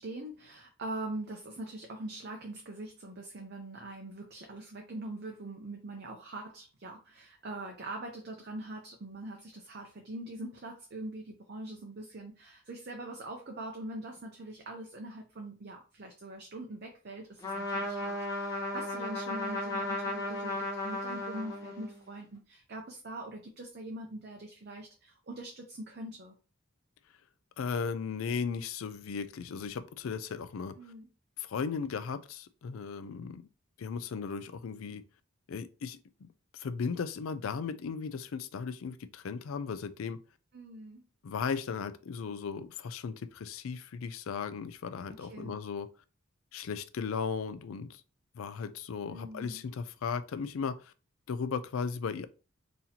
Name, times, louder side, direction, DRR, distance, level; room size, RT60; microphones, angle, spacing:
voice 1, 0.0-26.3 30.8-31.1 40.5-41.0 45.2-45.6 49.1-49.6, right 1 dB, 50° right, 0.6 m, -43 dB
Trumpet, 17.4-22.0, left 1 dB, 15° left, 0.9 m, -35 dB
voice 2, 27.6-30.8 31.4-33.4 33.8-35.0 35.5-36.3 36.5-40.2 41.2-45.9 46.5-48.0 48.3-50.9 51.3-52.3, left 5 dB, 80° left, 0.4 m, -36 dB
4.1 x 2.8 x 2.7 m
head